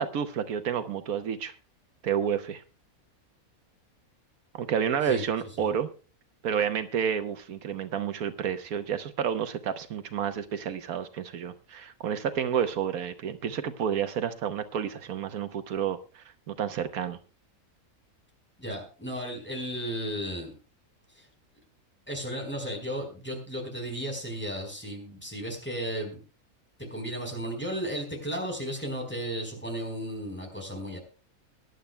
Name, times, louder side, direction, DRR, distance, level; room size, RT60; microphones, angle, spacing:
voice 1, 0.0-1.5 2.0-2.6 4.5-5.9 6.4-17.2, right 8 dB, 85° right, 10 dB, 1.3 m, -30 dB
voice 2, 18.6-20.5 21.2-21.3 22.1-26.2 26.8-31.0, equal, 5° left, 2 dB, 4.2 m, -34 dB
22.5 x 11.0 x 2.2 m, 0.34 s
omnidirectional pair, 1.5 m